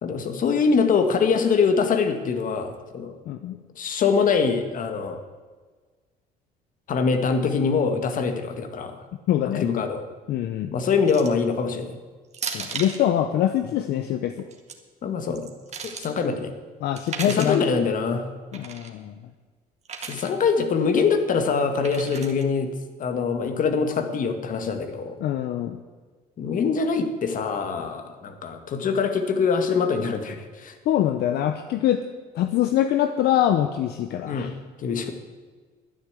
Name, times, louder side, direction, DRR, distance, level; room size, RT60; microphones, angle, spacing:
voice 1, 0.0-3.1 3.7-5.2 6.9-9.0 9.5-10.0 10.7-12.0 15.0-15.5 15.8-16.5 17.2-18.3 20.1-22.7 23.0-25.2 26.4-30.8 34.2-34.5 34.8-35.1, left 5 dB, 50° left, 7 dB, 1.7 m, -24 dB
voice 2, 3.3-3.6 9.3-9.7 10.3-10.7 12.5-14.3 16.8-17.6 18.5-19.1 25.2-25.8 30.9-32.0 32.3-34.5, left 11 dB, 75° left, 8 dB, 0.8 m, -24 dB
sound 1, 11.1-11.5 12.3-13.0 14.4-14.7 15.3-16.1 17.0-17.6 18.5-18.9 19.9-20.3 21.8-22.4, right 6 dB, 40° right, 1.9 m, -35 dB
12.0 x 10.0 x 8.2 m, 1.4 s
cardioid pair, 110°, 17 cm